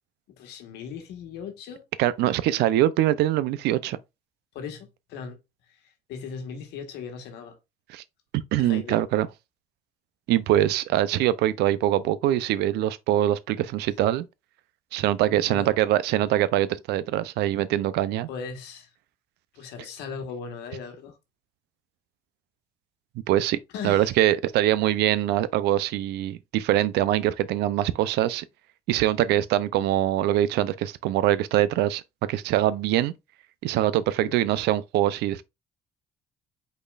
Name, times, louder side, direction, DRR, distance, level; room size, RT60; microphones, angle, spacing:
voice 1, 0.4-1.8 4.5-5.4 5.7-7.6 8.6-9.0 15.3-15.7 18.3-18.9 19.5-21.2 23.7-24.1 34.2-34.3, left 6 dB, 85° left, 1.3 m, -38 dB
voice 2, 2.0-4.0 7.9-8.0 8.3-9.3 10.3-14.3 14.9-18.3 23.3-23.6 23.8-28.4 28.9-32.0 32.3-33.1 33.6-35.4, right 13 dB, 85° right, 0.5 m, -23 dB
5.3 x 4.1 x 2.4 m
cardioid pair, 110°, 17 cm